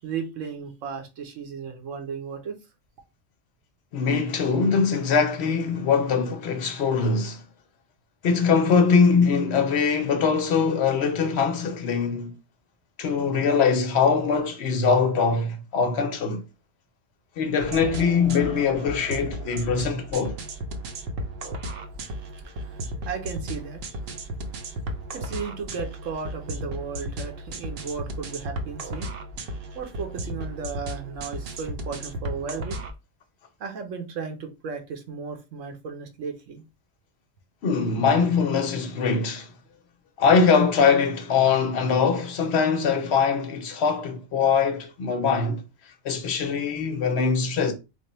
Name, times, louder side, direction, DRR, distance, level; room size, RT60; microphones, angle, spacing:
voice 1, 0.0-2.6 22.4-23.8 25.1-29.1 29.7-32.8 33.6-36.6, right 6 dB, 80° right, 1.1 m, -35 dB
voice 2, 3.9-7.4 8.2-12.3 13.0-16.4 17.4-20.4 37.6-39.5 40.2-45.6 46.0-47.7, left 5 dB, 60° left, 0.9 m, -22 dB
sound 1, 17.6-32.9, right 1 dB, 55° right, 0.7 m, -35 dB
3.2 x 2.1 x 4.1 m
omnidirectional pair, 1.3 m